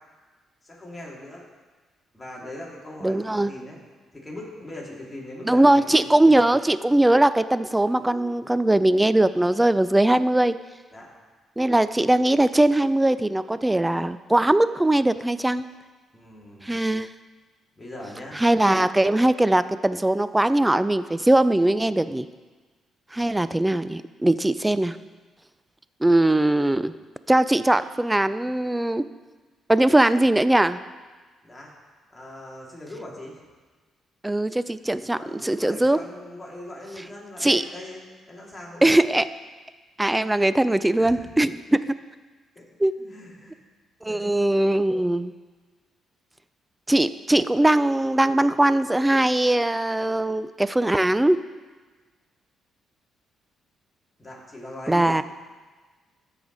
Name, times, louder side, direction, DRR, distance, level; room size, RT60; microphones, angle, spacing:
voice 1, 0.6-1.4 2.1-3.8 4.1-6.5 10.9-11.1 16.1-16.8 17.8-18.4 23.1-23.3 31.4-31.7 32.1-33.4 35.2-38.0 38.3-39.0 40.9-41.4 42.6-42.7 43.0-43.6 44.1-44.2 54.2-55.2, left 1 dB, 15° left, -3 dB, 2.5 m, -41 dB
voice 2, 3.0-3.5 5.5-10.5 11.6-15.6 16.6-17.1 18.4-22.3 23.1-25.0 26.0-26.9 27.3-29.0 29.7-30.8 34.2-36.0 37.4-37.6 38.8-39.3 40.0-41.8 42.8-42.9 44.0-45.3 46.9-51.4 54.9-55.2, right 1 dB, 10° right, 14 dB, 0.3 m, -20 dB
14.0 x 4.9 x 4.0 m, 1.4 s
cardioid pair, 90°, 0 cm